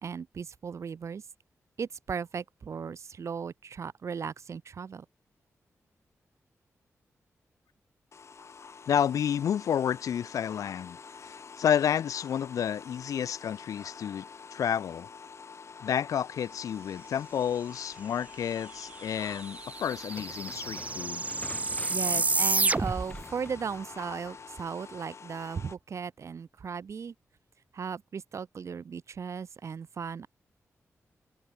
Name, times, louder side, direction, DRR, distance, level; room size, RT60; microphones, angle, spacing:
voice 1, 0.0-1.2 1.8-5.0 21.9-27.1 27.7-30.3, right 6 dB, 60° right, 1.2 m, -37 dB
sound 1, 8.1-25.8, left 5 dB, 55° left, 5.7 m, -47 dB
voice 2, 8.9-11.0 11.2-14.3 14.5-15.1 15.8-21.3, left 9 dB, 85° left, 0.4 m, -30 dB
sound 2, 18.7-18.8 19.0-23.2, right 3 dB, 25° right, 0.5 m, -30 dB
sound 3, 19.8-25.0, left 2 dB, 25° left, 2.8 m, -47 dB
wide cardioid pair, 100°, 6 cm